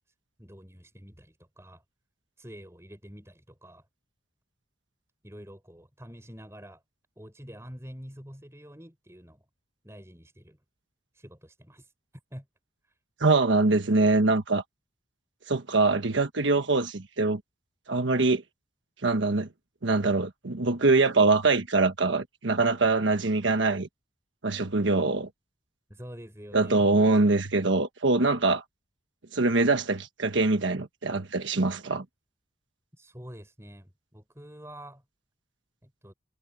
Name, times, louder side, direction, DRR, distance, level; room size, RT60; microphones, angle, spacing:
voice 1, 0.4-1.8 2.4-3.9 5.2-6.8 7.2-9.4 9.8-10.6 11.1-11.9 12.3-12.5 25.9-26.9 32.9-35.0 35.8-36.1, equal, 15° right, 6.4 m, -46 dB
voice 2, 13.2-14.6 15.5-17.4 17.9-18.4 19.0-19.5 19.8-23.9 24.4-25.3 26.5-28.6 29.3-32.0, right 3 dB, 85° right, 1.3 m, -23 dB
head